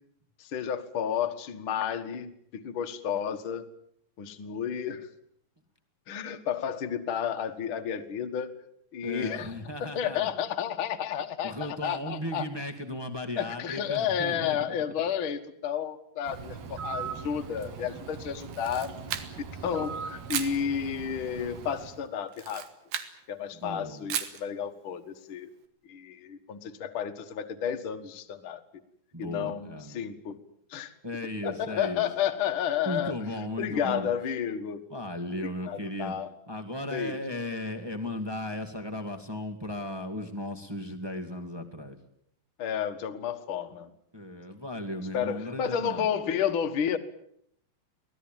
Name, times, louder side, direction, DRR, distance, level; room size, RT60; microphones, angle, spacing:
voice 1, 0.4-3.7 4.2-5.1 6.1-8.5 8.9-9.5 9.8-12.5 13.4-18.9 19.4-22.7 23.3-25.5 25.9-28.6 29.2-30.4 30.7-30.9 31.4-33.2 33.6-34.8 35.6-36.3 36.9-37.1 42.6-43.9 45.1-47.0, left 8 dB, 50° left, 7 dB, 1.7 m, -31 dB
voice 2, 9.0-10.3 11.4-14.6 23.5-24.1 29.1-30.0 31.0-32.1 32.8-34.1 34.9-36.1 36.5-42.0 44.1-46.1, left 1 dB, 20° right, 3 dB, 0.7 m, -36 dB
Bird, 16.2-22.1, right 6 dB, 60° right, 2.2 m, -40 dB
Camera, 18.4-19.6 20.3-20.6 22.3-23.1 24.1-24.4, right 10 dB, 80° right, 3.4 m, -34 dB
24.0 x 17.5 x 9.0 m, 0.70 s
omnidirectional pair, 4.1 m